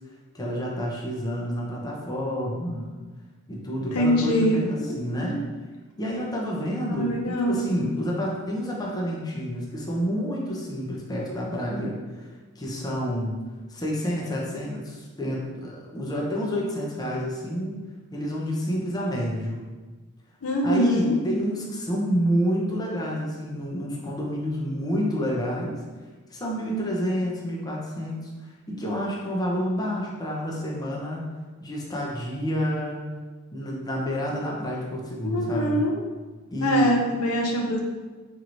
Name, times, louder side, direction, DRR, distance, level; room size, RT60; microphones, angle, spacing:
voice 1, 0.3-3.0 3.5-5.4 6.0-12.3 12.6-13.4 13.7-17.8 18.1-19.6 20.6-25.8 26.3-31.2 31.6-33.0 33.5-35.9 36.5-36.9, equal, 20° left, -4 dB, 0.6 m, -29 dB
voice 2, 3.9-4.6 4.9-5.3 7.0-7.6 20.4-21.2 35.2-36.0 36.6-37.8, equal, 80° left, 0 dB, 0.6 m, -24 dB
4.5 x 3.0 x 2.6 m, 1.3 s
head